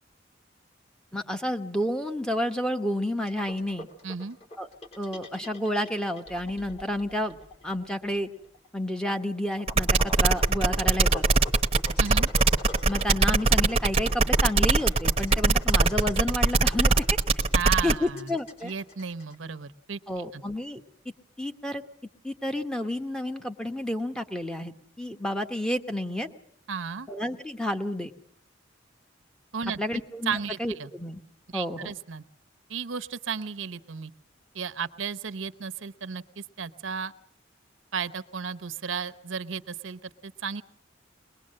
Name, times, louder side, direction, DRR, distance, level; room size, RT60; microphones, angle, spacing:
voice 1, 1.1-3.9 4.6-4.7 5.0-7.4 7.6-8.3 8.7-11.3 12.8-16.9 17.8-18.7 20.1-20.8 21.4-21.8 22.2-26.3 27.1-28.1 29.8-31.2 31.5-31.9, left 1 dB, 5° left, 3 dB, 1.1 m, -30 dB
sound 1, 3.3-19.3, left 1 dB, 35° left, 3.7 m, -46 dB
voice 2, 4.0-4.4 12.0-12.3 17.5-20.4 26.7-27.1 29.5-30.9 31.5-32.2 32.7-34.1 34.5-37.1 37.9-40.6, right 6 dB, 85° right, 11 dB, 0.9 m, -34 dB
sound 2, 9.7-17.9, right 3 dB, 30° right, 0.9 m, -21 dB
22.5 x 20.5 x 7.6 m, 0.64 s
head